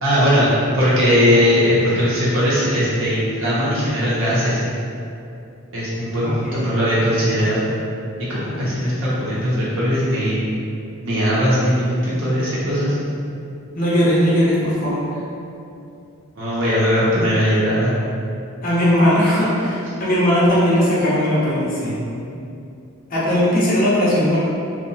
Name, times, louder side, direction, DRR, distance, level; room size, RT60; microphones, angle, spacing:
voice 1, 0.0-0.5 0.7-4.6 5.7-7.7 8.3-10.4 11.0-13.0 16.4-17.9, equal, 65° right, -9 dB, 0.6 m, -19 dB
voice 2, 6.2-6.8 13.7-15.0 18.6-22.0 22.3-22.4 23.1-24.4, equal, 40° left, -7 dB, 0.5 m, -18 dB
2.7 x 2.0 x 2.6 m, 2.6 s
head